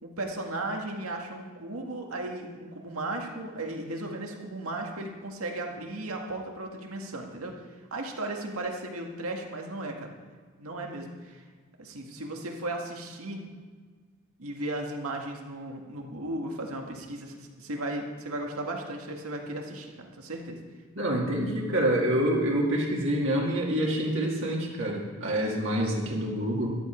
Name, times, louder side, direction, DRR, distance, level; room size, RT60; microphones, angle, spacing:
voice 1, 0.0-7.6 7.9-10.1 10.6-11.4 11.8-13.4 14.4-20.6, right 2 dB, 75° right, 1 dB, 1.9 m, -35 dB
voice 2, 21.0-26.8, right 1 dB, 60° right, -3 dB, 2.1 m, -27 dB
14.0 x 12.0 x 4.5 m, 1.5 s
head